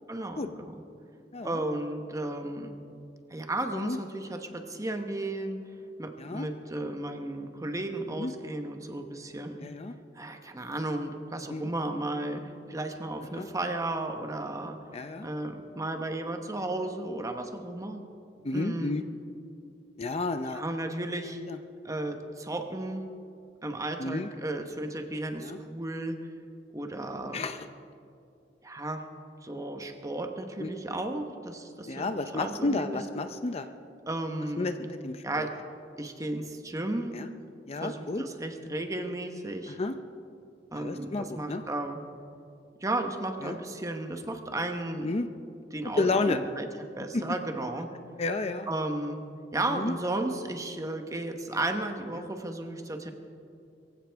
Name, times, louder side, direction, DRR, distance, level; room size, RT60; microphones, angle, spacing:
voice 1, 0.1-0.7 1.4-2.8 3.3-5.6 6.0-9.7 10.1-14.8 15.2-18.1 18.5-19.0 20.5-21.4 21.8-23.0 23.6-26.2 26.7-27.4 28.6-29.1 29.4-33.0 34.1-34.7 35.2-35.5 36.0-37.2 37.8-39.8 40.7-42.0 42.8-45.1 45.7-47.9 48.7-49.2 49.5-53.1, right 1 dB, 20° right, 5 dB, 1.1 m, -34 dB
voice 2, 1.3-1.6 3.7-4.0 6.2-6.5 8.2-8.3 9.6-9.9 11.5-11.7 13.3-13.5 14.9-15.3 18.4-19.0 20.0-20.6 21.5-21.6 24.0-24.3 25.4-25.6 27.3-27.7 30.6-30.7 31.9-33.7 34.6-35.5 37.1-37.3 37.7-38.2 39.7-40.0 40.7-41.6 43.4-43.6 45.0-45.3 46.0-46.4 47.1-47.2 48.2-48.7 49.7-49.9, left 3 dB, 35° left, 9 dB, 0.5 m, -31 dB
22.0 x 15.5 x 3.5 m, 2.5 s
head